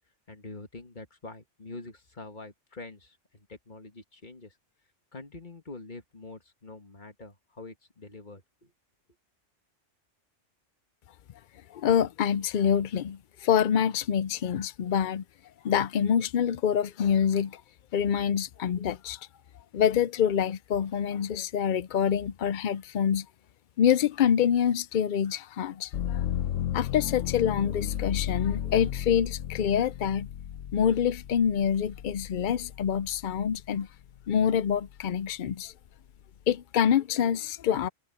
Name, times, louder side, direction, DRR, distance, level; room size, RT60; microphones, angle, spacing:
voice 1, 0.3-3.2 3.5-4.5 5.1-8.4, left 3 dB, 40° left, 2.1 m, -45 dB
voice 2, 11.7-15.2 15.6-17.6 17.9-19.3 19.7-23.3 23.8-26.2 26.7-30.3 30.7-33.9 34.3-35.7 36.5-37.9, left 8 dB, 60° left, 0.5 m, -26 dB
sound 1, 25.9-33.7 34.2-35.0, left 10 dB, 85° left, 1.0 m, -34 dB
omnidirectional pair, 1.3 m